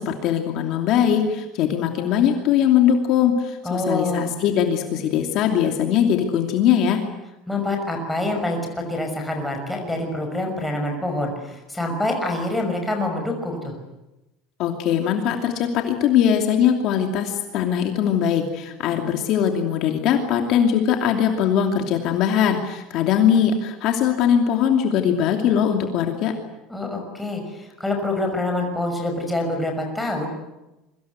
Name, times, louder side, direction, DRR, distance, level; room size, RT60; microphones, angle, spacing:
voice 1, 0.0-7.0 14.6-26.3, left 8 dB, 45° left, 3 dB, 2.8 m, -21 dB
voice 2, 3.6-4.3 7.5-13.7 26.7-30.3, left 2 dB, 5° left, 2 dB, 5.9 m, -26 dB
27.0 x 24.5 x 8.3 m, 0.97 s
cardioid pair, 175°, 0 cm